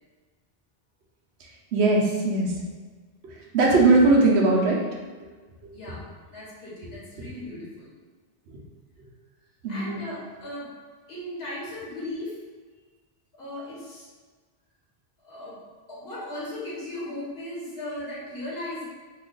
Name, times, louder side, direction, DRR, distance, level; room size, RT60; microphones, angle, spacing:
voice 1, 1.7-2.5 3.2-4.8 5.6-5.7 7.2-7.3 9.6-10.0, right 2 dB, 80° right, -2 dB, 0.9 m, -20 dB
voice 2, 5.7-7.9 9.7-10.7 11.1-12.4 13.4-14.1 15.2-15.6 15.9-18.8, left 1 dB, 70° left, -7 dB, 1.4 m, -37 dB
2.9 x 2.3 x 3.7 m, 1.4 s
omnidirectional pair, 1.1 m